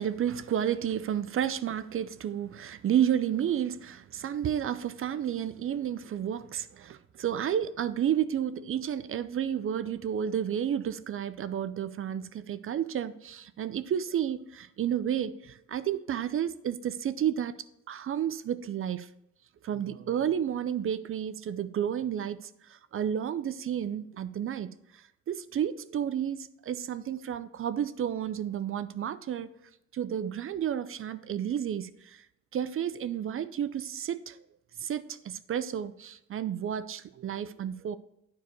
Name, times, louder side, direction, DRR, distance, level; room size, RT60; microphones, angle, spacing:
voice 1, 0.0-17.6 17.9-19.1 19.6-24.7 25.3-29.5 29.9-32.2 32.5-34.4 34.8-38.0, right 9 dB, 45° right, 0.5 m, -31 dB
9.2 x 4.7 x 4.7 m
cardioid pair, 90°, 30 cm